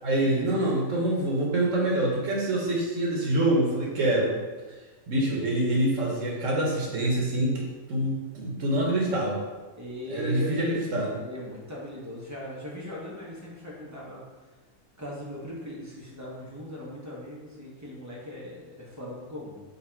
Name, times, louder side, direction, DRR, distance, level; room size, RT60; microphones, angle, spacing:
voice 1, 0.0-4.3 5.1-9.4 10.1-11.1, right 1 dB, 65° right, -2 dB, 1.1 m, -26 dB
voice 2, 9.8-10.8 11.2-14.2 15.0-19.6, left 1 dB, 25° right, -5 dB, 0.4 m, -39 dB
4.1 x 2.4 x 4.3 m, 1.3 s
omnidirectional pair, 1.5 m